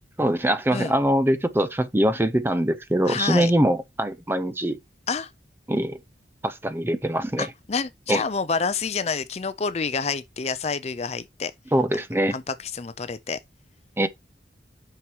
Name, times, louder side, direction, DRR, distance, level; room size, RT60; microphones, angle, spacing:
voice 1, 0.2-4.8 5.7-6.0 6.4-7.5 8.1-8.2 11.7-12.3 14.0-14.1, right 1 dB, 10° right, 0.6 m, -23 dB
voice 2, 3.1-3.5 5.1-5.3 7.4-11.5 12.3-13.4, left 5 dB, 35° left, 0.5 m, -28 dB
9.1 x 6.0 x 2.9 m
head